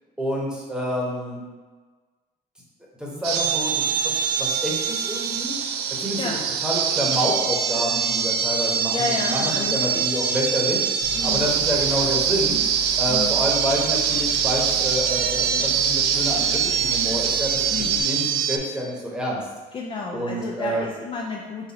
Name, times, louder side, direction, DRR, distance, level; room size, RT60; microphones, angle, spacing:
voice 1, 0.2-1.4 3.0-5.5 5.9-6.3 6.6-12.6 13.0-19.4 20.1-20.9, equal, 5° right, -4 dB, 1.0 m, -28 dB
sound 1, 3.2-18.6, right 7 dB, 75° right, 0.4 m, -23 dB
voice 2, 8.9-10.0 11.1-11.5 13.1-13.4 17.7-18.1 19.7-21.7, left 4 dB, 30° left, -1 dB, 0.4 m, -31 dB
sound 2, 11.0-18.0, left 2 dB, 85° left, 0.8 m, -38 dB
4.1 x 2.6 x 4.0 m, 1.4 s
cardioid pair, 110°, 17 cm